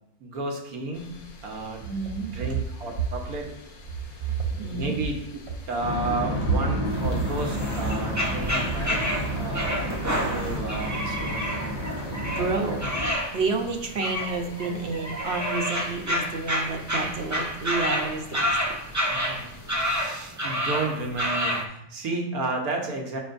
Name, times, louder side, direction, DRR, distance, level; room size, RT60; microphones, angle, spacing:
voice 1, 0.2-1.2 1.4-1.8 2.2-3.5 4.2-4.3 4.7-5.4 5.7-9.0 9.3-9.7 10.2-11.4 19.1-23.2, right 3 dB, 90° right, 1 dB, 1.5 m, -32 dB
sound 1, 0.9-20.0, left 1 dB, 85° left, 1.4 m, -47 dB
voice 2, 1.8-2.3 4.3-5.0 12.2-18.6, right 4 dB, 55° right, 3 dB, 1.0 m, -30 dB
sound 2, 5.8-13.1, equal, 50° left, 1.4 m, -30 dB
sound 3, 6.9-21.6, equal, 20° right, 0.5 m, -29 dB
7.2 x 5.5 x 2.6 m, 0.76 s
omnidirectional pair, 1.5 m